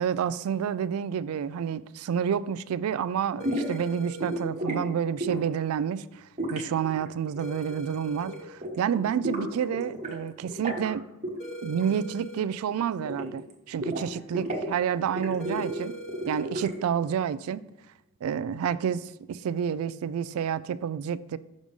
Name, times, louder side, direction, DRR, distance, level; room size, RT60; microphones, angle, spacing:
voice 1, 0.0-6.2 6.5-11.0 11.6-15.9 16.3-17.6 18.2-21.4, right 8 dB, 70° right, 0.3 m, -29 dB
sound 1, 3.4-4.4 7.4-8.4 11.4-12.4 15.4-16.4, right 1 dB, 35° left, 1.6 m, -40 dB
sound 2, 3.4-3.8 4.2-4.8 5.2-5.6 6.4-7.8 8.1-8.4 8.6-10.2 10.4-10.9 11.2-12.1 12.4-13.5 13.8-14.7 15.1-16.9, right 1 dB, 35° right, 1.3 m, -33 dB
6.2 x 3.6 x 5.4 m
head